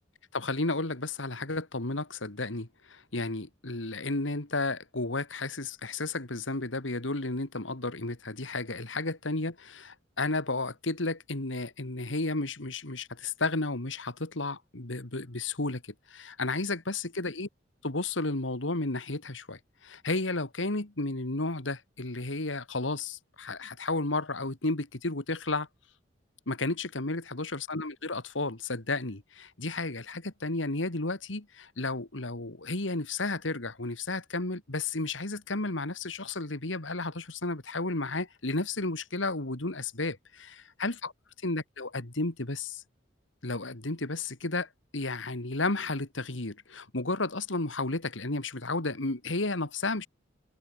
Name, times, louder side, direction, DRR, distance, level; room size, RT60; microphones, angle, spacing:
voice 1, 0.3-17.5 17.8-25.7 26.5-41.1 41.4-42.8 43.4-50.1, left 2 dB, 85° left, 2.4 m, -33 dB
open air
head